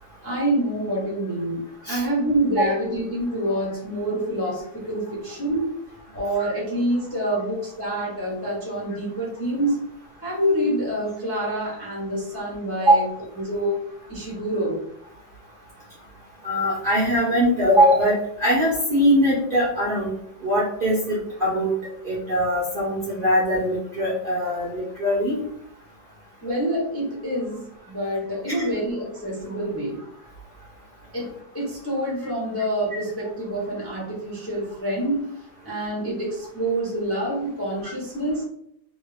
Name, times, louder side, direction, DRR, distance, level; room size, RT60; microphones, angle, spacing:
voice 1, 0.2-5.7 6.1-9.8 10.2-13.0 13.4-13.8 14.1-14.8 26.4-30.0 31.1-31.3 31.5-35.3 35.6-38.4, right 1 dB, 15° left, -5 dB, 0.5 m, -26 dB
voice 2, 16.4-20.1 20.4-21.7 22.0-25.3, equal, 70° right, -6 dB, 0.5 m, -21 dB
2.8 x 2.6 x 3.2 m, 0.72 s
omnidirectional pair, 2.0 m